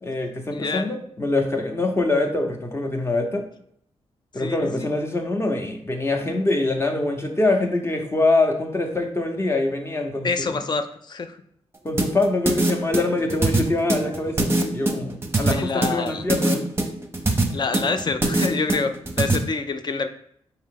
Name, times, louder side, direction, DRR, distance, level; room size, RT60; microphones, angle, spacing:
voice 1, 0.0-3.4 4.3-10.5 11.8-16.7, left 2 dB, 20° left, 4 dB, 0.8 m, -24 dB
voice 2, 0.5-0.9 4.4-4.9 10.2-11.4 15.5-16.2 17.5-20.1, left 4 dB, 40° left, 9 dB, 0.4 m, -27 dB
sound 1, 12.0-19.4, right 2 dB, 20° right, 0.7 m, -22 dB
4.7 x 2.8 x 3.7 m, 0.67 s
cardioid pair, 90°, 11 cm